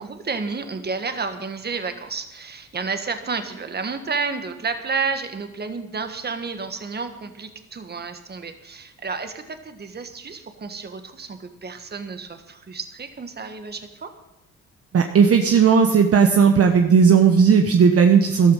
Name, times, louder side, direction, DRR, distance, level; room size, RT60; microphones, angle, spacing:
voice 1, 0.0-14.1, right 4 dB, 35° right, 8 dB, 1.7 m, -31 dB
voice 2, 14.9-18.5, right 6 dB, 50° right, 5 dB, 1.2 m, -15 dB
14.0 x 12.5 x 5.6 m, 0.93 s
cardioid pair, 90°, 30 cm